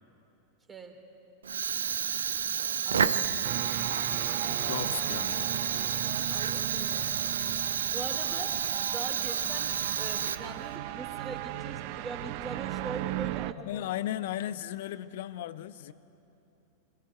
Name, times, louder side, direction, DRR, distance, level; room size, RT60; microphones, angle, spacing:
voice 1, 0.7-1.0 2.8-3.5 6.3-7.1 7.8-8.6 8.9-13.9, right 3 dB, 20° right, 4 dB, 3.2 m, -42 dB
Fire, 1.4-10.8, right 7 dB, 65° right, 0.8 m, -30 dB
voice 2, 3.0-3.4 4.6-5.5 13.6-15.9, left 12 dB, 55° left, 16 dB, 0.8 m, -36 dB
sound 1, 3.4-13.5, right 16 dB, 45° right, 0.5 m, -38 dB
24.5 x 21.0 x 9.4 m, 2.8 s
figure-of-eight pair, 90°, 0 cm